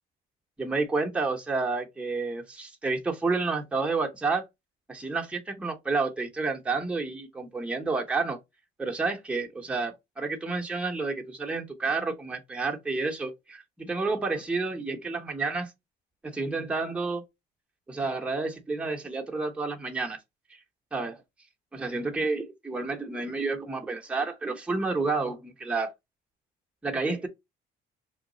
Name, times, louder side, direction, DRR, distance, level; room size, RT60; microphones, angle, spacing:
voice 1, 0.6-4.4 4.9-8.4 8.8-15.7 16.2-17.2 17.9-20.2 20.5-20.6 20.9-21.2 21.7-25.9 26.8-27.3, right 3 dB, 5° right, 0.7 m, -30 dB
3.1 x 2.2 x 3.8 m
cardioid pair, 110°, 17 cm